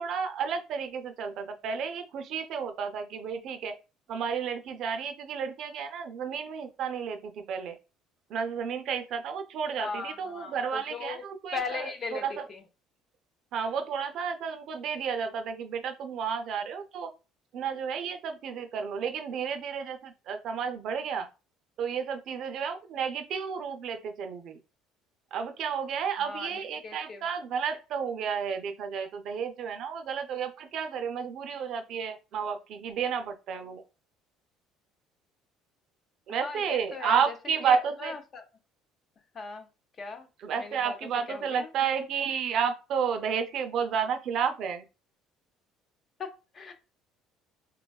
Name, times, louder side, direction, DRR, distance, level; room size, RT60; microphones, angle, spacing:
voice 1, 0.0-3.8 4.1-7.8 8.3-12.5 13.5-17.1 17.5-21.3 21.8-24.6 25.3-33.8 36.3-38.1 40.4-44.8, right 7 dB, 50° right, 0.4 m, -31 dB
voice 2, 9.8-11.2 11.5-12.6 26.2-27.2 36.3-37.3 37.6-38.4 39.3-39.7 40.0-40.3 40.6-41.0 41.3-41.7 42.0-42.1 46.2-46.7, left 5 dB, 30° left, 0.4 m, -38 dB
3.3 x 2.2 x 2.2 m
cardioid pair, 160°, 0 cm